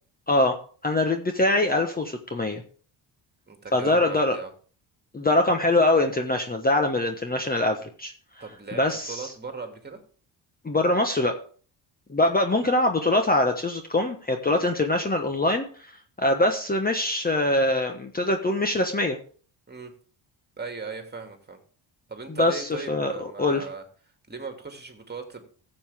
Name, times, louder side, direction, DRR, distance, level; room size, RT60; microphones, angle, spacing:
voice 1, 0.3-0.6 0.8-2.6 3.7-4.4 5.1-8.1 8.8-9.3 10.6-11.4 12.1-15.7 16.2-19.2 22.4-23.6, left 2 dB, 20° left, 5 dB, 1.2 m, -23 dB
voice 2, 3.5-4.5 8.4-10.0 19.7-19.9 20.6-21.6 22.1-23.8 24.3-25.5, right 4 dB, 20° right, 5 dB, 2.5 m, -38 dB
13.0 x 7.8 x 3.6 m, 0.42 s
cardioid pair, 85°, 45 cm